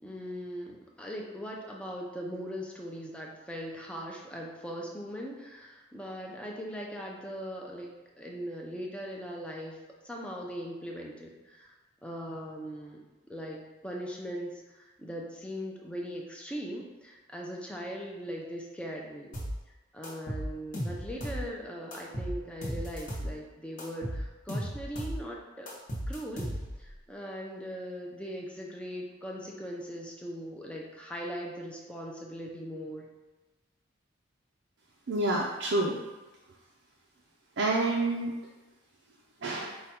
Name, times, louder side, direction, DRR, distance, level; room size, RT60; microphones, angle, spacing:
voice 1, 0.0-7.9 8.2-9.8 10.0-11.7 12.0-13.0 13.3-19.3 19.9-25.7 26.1-26.5 26.8-33.1, equal, 5° left, -1 dB, 0.5 m, -40 dB
sound 1, 19.3-19.6 20.0-21.5 21.9-23.3 23.8-25.2 25.7-26.9, equal, 45° left, 1.0 m, -35 dB
voice 2, 35.1-36.0 37.6-38.3 39.4-39.8, right 2 dB, 65° right, -2 dB, 0.5 m, -28 dB
4.9 x 2.3 x 4.2 m, 1.1 s
head